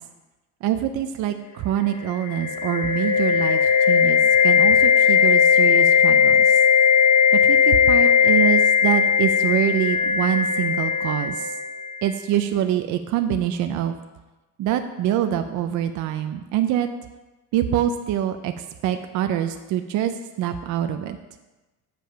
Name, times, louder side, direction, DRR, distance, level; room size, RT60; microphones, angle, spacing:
voice 1, 0.6-6.6 7.3-11.5 12.0-14.0 14.6-16.9 17.5-20.1 20.4-21.2, right 11 dB, 60° right, 8 dB, 0.5 m, -25 dB
sound 1, 2.1-11.9, left 7 dB, 45° left, 0.8 m, -18 dB
7.5 x 5.2 x 5.7 m, 1.1 s
cardioid pair, 160°, 33 cm